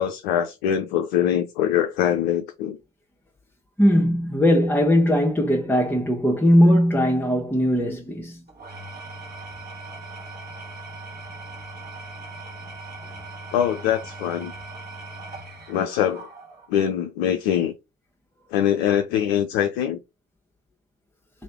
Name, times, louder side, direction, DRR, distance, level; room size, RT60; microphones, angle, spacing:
voice 1, 0.0-2.8 13.5-14.5 15.7-16.3 16.7-17.7 18.5-20.0, left 10 dB, 70° left, 0.5 m, -23 dB
voice 2, 3.8-8.4, equal, 5° left, 1.0 m, -19 dB
Engine / Tools, 8.5-16.8, right 2 dB, 35° right, 1.4 m, -39 dB
3.2 x 2.7 x 4.4 m
figure-of-eight pair, 45°, 29 cm